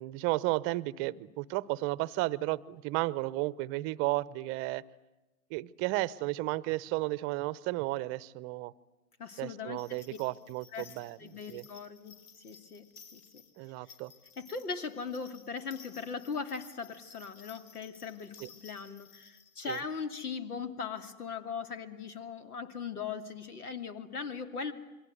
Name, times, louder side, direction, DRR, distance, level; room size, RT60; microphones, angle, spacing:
voice 1, 0.0-4.8 5.5-8.7 9.4-11.7 13.6-14.1 18.4-18.5 19.7-19.8, right 19 dB, 30° right, 19 dB, 0.8 m, -33 dB
voice 2, 9.2-9.8 10.7-10.9 11.2-12.9 13.1-13.4 14.4-24.7, left 5 dB, 80° left, 9 dB, 2.8 m, -39 dB
Endless jingle bell, 9.8-19.8, left 5 dB, 50° left, 4.7 m, -56 dB
28.0 x 23.0 x 8.0 m, 1.1 s
hypercardioid pair, 120°, 44 cm